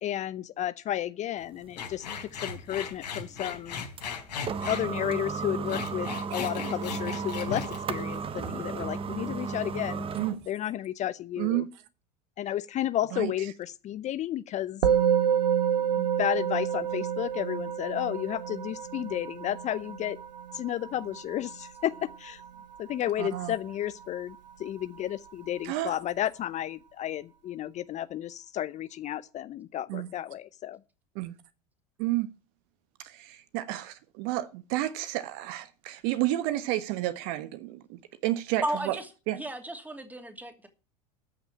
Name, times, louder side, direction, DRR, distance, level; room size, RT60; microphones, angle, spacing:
voice 1, 0.0-2.1 2.4-3.8 4.7-10.0 10.5-11.6 12.4-14.8 15.9-20.2 20.5-22.4 22.8-30.8, left 12 dB, 35° left, 0.6 m, -32 dB
sound 1, 1.4-10.5, right 5 dB, 25° right, 0.9 m, -35 dB
sound 2, 1.8-4.9 5.5-8.8 9.1-9.5, left 6 dB, 80° left, 3.8 m, -37 dB
voice 2, 11.4-11.7 13.1-13.3 23.2-23.5 25.6-26.0 29.9-30.1 31.1-31.3 32.0-32.3 33.0-39.0 39.3-39.4, right 15 dB, 55° right, 1.2 m, -31 dB
Musical instrument, 14.8-24.3, right 8 dB, 85° right, 1.0 m, -29 dB
voice 3, 38.6-40.7, right 1 dB, 10° right, 2.6 m, -34 dB
13.0 x 6.1 x 8.6 m
hypercardioid pair, 90°, 21 cm